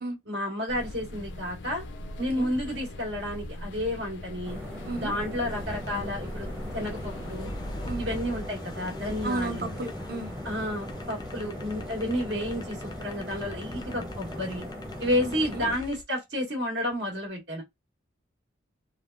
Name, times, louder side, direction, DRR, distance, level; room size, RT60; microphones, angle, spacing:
voice 1, 0.2-1.8 2.2-4.6 4.9-7.5 8.0-9.8 10.4-14.7 15.0-17.6, left 1 dB, 85° right, 1.7 m, -31 dB
sound 1, 0.7-7.9, left 1 dB, 80° left, 0.4 m, -41 dB
sound 2, 4.4-15.8, left 1 dB, 15° right, 0.6 m, -39 dB
sound 3, 5.5-16.0, left 1 dB, 20° left, 0.4 m, -42 dB
voice 2, 9.2-10.3 15.2-15.6, right 2 dB, 55° right, 0.6 m, -33 dB
3.4 x 2.2 x 2.4 m
head